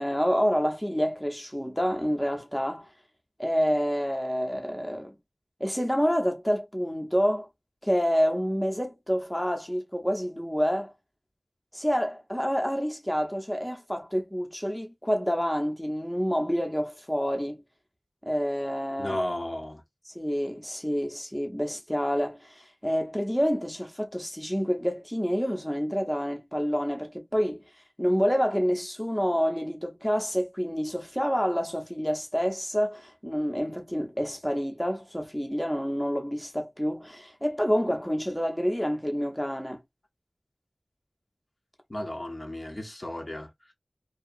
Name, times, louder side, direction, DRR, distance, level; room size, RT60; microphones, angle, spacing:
voice 1, 0.0-2.9 3.4-5.1 5.6-7.5 7.8-10.9 11.7-17.6 18.3-19.2 20.0-27.6 28.0-39.8, equal, 10° left, 0.6 m, -28 dB
voice 2, 19.0-19.8 41.9-43.7, left 1 dB, 45° left, 0.7 m, -34 dB
2.7 x 2.2 x 2.4 m
wide cardioid pair, 40°, 0 cm